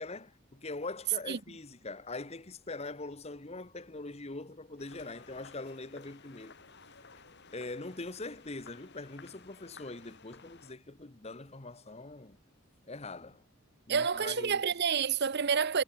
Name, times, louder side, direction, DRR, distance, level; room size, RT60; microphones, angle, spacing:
voice 1, 0.0-6.5 7.5-12.4 12.9-13.4 13.9-14.6, left 2 dB, 30° left, 1.2 m, -42 dB
sound 1, 4.8-10.7, left 5 dB, 50° left, 4.7 m, -55 dB
voice 2, 13.9-15.8, right 6 dB, 50° right, 0.7 m, -29 dB
head